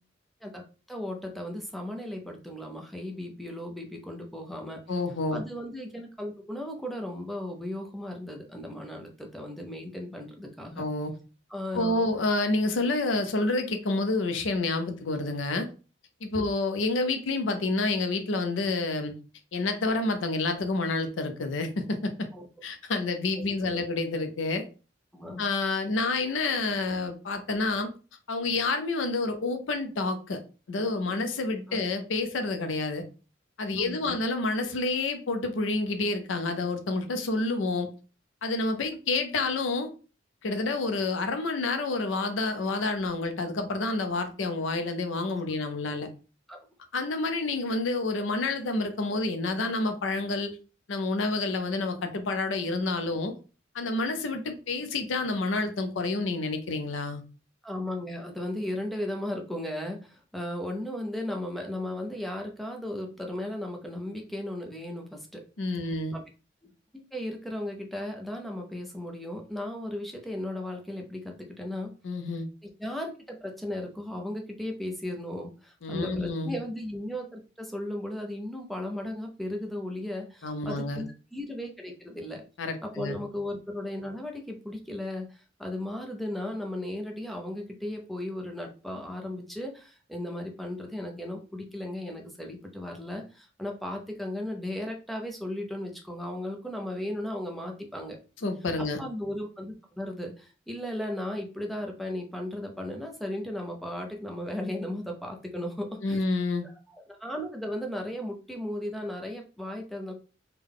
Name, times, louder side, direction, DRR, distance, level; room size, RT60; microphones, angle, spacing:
voice 1, 0.9-4.8 5.3-10.8 11.5-12.1 22.3-22.5 23.3-23.9 25.1-25.4 31.7-31.8 33.8-34.2 46.5-46.6 57.6-65.4 66.1-66.2 67.1-71.9 72.6-82.4 82.8-98.2 99.0-106.2 106.9-110.1, left 1 dB, ahead, 0.6 m, -36 dB
voice 2, 4.9-5.4 10.8-11.1 11.7-15.7 16.2-19.1 19.5-22.3 22.6-24.6 25.4-27.9 28.3-30.4 30.7-33.0 33.6-37.9 38.4-39.9 40.4-46.1 46.9-50.6 50.9-53.3 53.7-57.2 65.6-66.2 72.0-72.5 75.8-76.6 80.4-81.0 82.6-83.2 98.4-99.0 106.0-106.6, left 3 dB, 80° left, 0.5 m, -29 dB
3.7 x 2.2 x 3.5 m
head